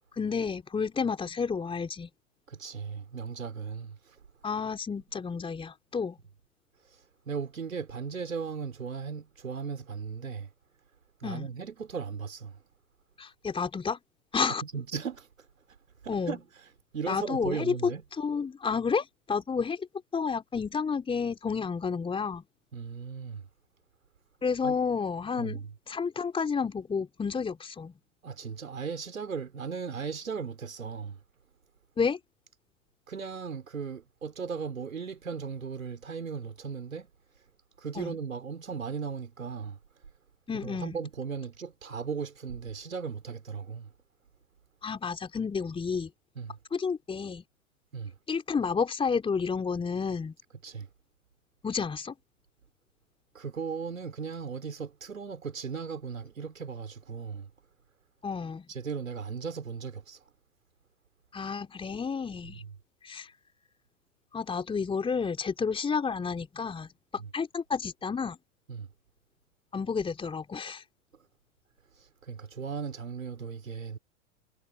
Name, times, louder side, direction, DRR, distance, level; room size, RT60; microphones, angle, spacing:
voice 1, 0.2-2.1 4.4-6.2 11.2-11.5 13.2-14.0 14.3-14.6 16.1-16.4 17.1-17.9 18.2-19.9 20.1-22.4 24.4-25.6 25.9-27.9 32.0-32.2 38.0-38.2 40.5-41.0 44.8-46.1 46.7-47.4 48.3-50.3 51.6-52.1 58.2-58.7 61.3-62.6 63.0-63.3 64.3-68.4 69.7-70.8, left 5 dB, 15° left, 3.8 m, -31 dB
voice 2, 2.5-4.2 7.3-10.5 11.2-12.6 14.6-15.3 16.0-16.4 16.9-18.0 22.7-23.5 24.6-24.8 25.4-25.7 28.2-31.2 33.1-37.1 37.8-39.8 40.5-43.9 46.4-46.6 47.9-48.2 50.6-50.9 53.3-57.5 58.7-60.2 62.5-62.7 67.2-67.3 68.7-68.9 72.0-74.0, right 6 dB, 75° right, 5.2 m, -37 dB
figure-of-eight pair, 95°, 41 cm